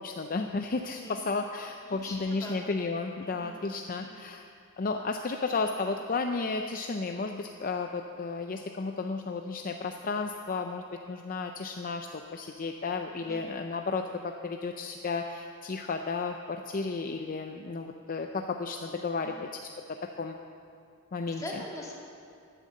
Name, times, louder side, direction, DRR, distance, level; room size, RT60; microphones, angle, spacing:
voice 1, 0.0-4.4 4.8-19.7 20.2-20.4 21.1-21.6, left 4 dB, 40° left, 5 dB, 0.5 m, -33 dB
voice 2, 0.8-1.2 1.8-2.6 3.2-3.6 3.8-4.1 13.1-13.4 19.2-19.4 21.4-21.9, left 1 dB, 15° left, -3 dB, 2.3 m, -43 dB
11.5 x 10.0 x 7.5 m, 2.5 s
head